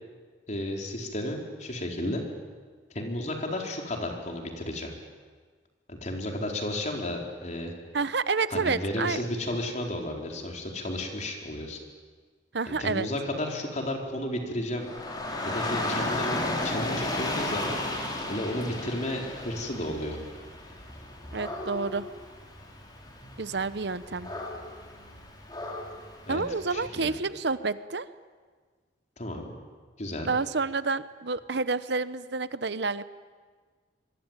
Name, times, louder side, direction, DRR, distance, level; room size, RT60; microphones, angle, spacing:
voice 1, 0.5-2.2 2.9-4.9 5.9-7.7 8.5-11.8 12.7-14.9 15.4-20.2 26.3-26.4 26.7-27.1 29.2-29.5 30.0-30.3, left 1 dB, 40° left, 1 dB, 4.5 m, -33 dB
voice 2, 7.9-9.2 12.5-13.1 21.3-22.1 23.4-24.3 26.3-28.1 30.3-33.0, right 4 dB, 70° right, 14 dB, 1.0 m, -29 dB
Dog / Rain, 14.7-26.9, left 2 dB, 25° left, 5.0 m, -34 dB
25.5 x 23.5 x 9.2 m, 1.5 s
head